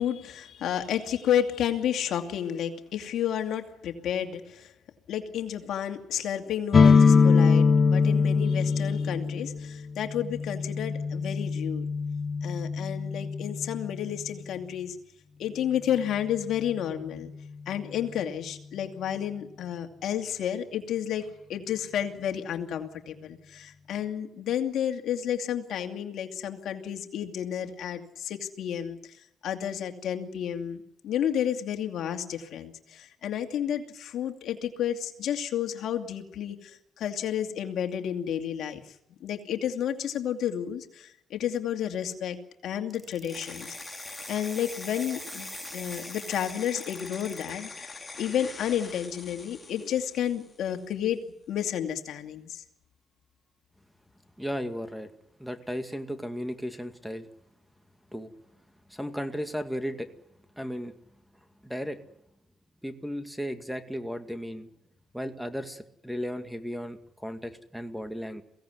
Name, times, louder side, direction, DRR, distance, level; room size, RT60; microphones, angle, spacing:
voice 1, 0.0-4.7 5.1-11.9 12.4-15.0 15.4-17.3 17.7-29.0 29.4-38.8 39.2-42.4 42.6-43.8 44.3-47.9 48.2-51.2 51.5-52.6, left 9 dB, 75° left, 5 dB, 2.5 m, -31 dB
sound 1, 6.7-14.3, left 5 dB, 40° left, 1.4 m, -23 dB
sound 2, 42.9-47.5, right 2 dB, 15° right, 3.5 m, -45 dB
sound 3, 43.3-50.8, left 3 dB, 25° left, 3.9 m, -43 dB
voice 2, 54.4-55.1 55.4-57.3 58.1-58.3 58.9-60.1 60.6-60.9 61.6-62.0 62.8-64.7 65.1-68.4, equal, ahead, 8 dB, 2.2 m, -35 dB
23.0 x 17.0 x 9.6 m, 0.82 s
cardioid pair, 90°, 0 cm